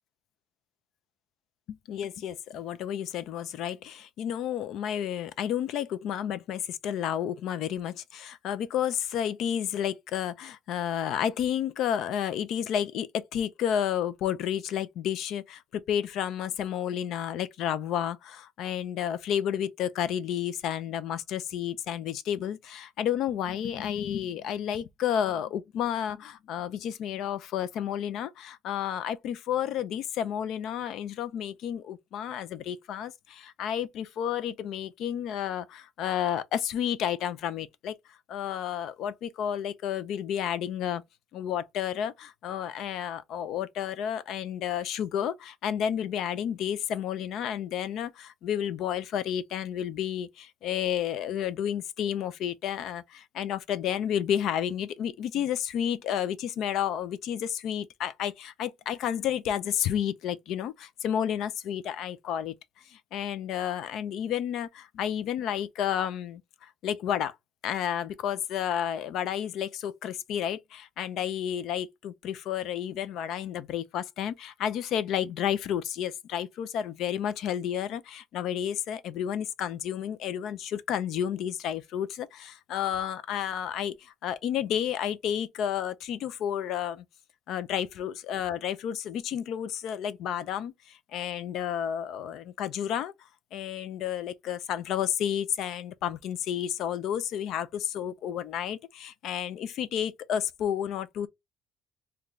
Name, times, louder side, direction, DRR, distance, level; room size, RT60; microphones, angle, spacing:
voice 1, 1.7-41.0 41.3-62.5 62.8-67.3 67.6-87.0 87.5-93.1 93.5-101.3, left 9 dB, 65° left, 0.4 m, -31 dB
3.8 x 2.2 x 3.0 m
cardioid pair, 140°, 0 cm